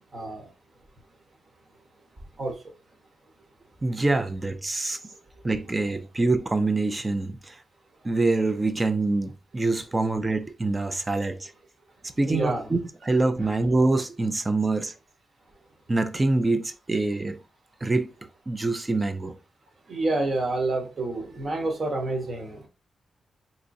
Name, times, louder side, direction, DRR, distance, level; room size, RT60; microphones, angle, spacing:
voice 1, 3.8-5.0 5.4-7.6 8.0-11.5 12.2-14.9 15.9-17.4 17.8-18.1 18.5-19.3, right 2 dB, 25° right, 0.4 m, -25 dB
voice 2, 12.3-12.7 13.4-13.5 19.9-22.7, right 2 dB, 50° right, 1.2 m, -28 dB
3.7 x 2.9 x 2.6 m
cardioid pair, 105°, 0 cm